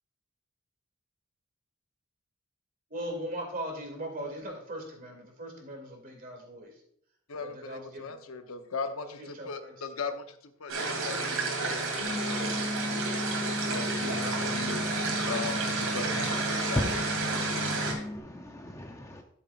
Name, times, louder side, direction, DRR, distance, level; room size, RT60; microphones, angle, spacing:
voice 1, 2.9-6.7 7.4-8.2 9.0-10.0, right 1 dB, 40° right, 2 dB, 2.5 m, -39 dB
voice 2, 7.3-12.7 13.7-17.0, left 4 dB, 80° left, 7 dB, 0.8 m, -39 dB
sound 1, 10.7-17.9, right 3 dB, 80° right, 2.6 m, -31 dB
sound 2, 12.0-18.2, left 2 dB, 55° right, 1.1 m, -36 dB
voice 3, 16.8-19.2, left 1 dB, 15° left, 3 dB, 0.6 m, -37 dB
13.0 x 7.3 x 2.4 m, 0.66 s
head